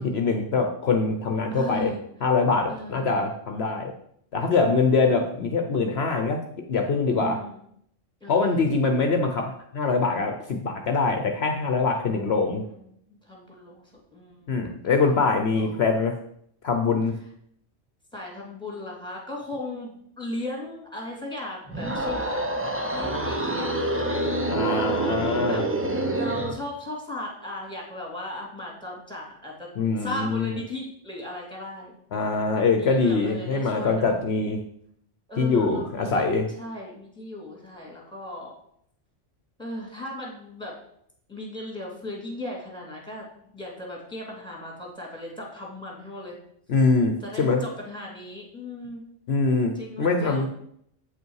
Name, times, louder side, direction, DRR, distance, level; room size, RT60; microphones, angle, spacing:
voice 1, 0.0-1.9 2.2-3.9 4.3-6.4 6.7-7.4 8.3-12.6 14.5-16.1 16.6-17.1 24.5-25.7 29.8-30.5 32.1-34.6 35.4-36.5 46.7-47.6 49.3-50.5, left 4 dB, 60° left, 5 dB, 1.0 m, -23 dB
voice 2, 1.5-2.0 2.7-3.1 7.1-7.6 8.2-8.6 11.3-11.6 11.9-14.6 15.5-15.9 18.1-25.7 26.1-29.7 30.0-31.9 32.8-34.1 35.3-36.2 36.6-38.5 39.6-40.8 41.3-43.3 43.5-46.4 47.2-49.0 49.7-50.5, left 1 dB, 5° left, -2 dB, 2.4 m, -37 dB
sound 1, 21.7-26.6, right 2 dB, 15° right, 0.6 m, -27 dB
8.4 x 5.5 x 4.6 m, 0.69 s
omnidirectional pair, 1.3 m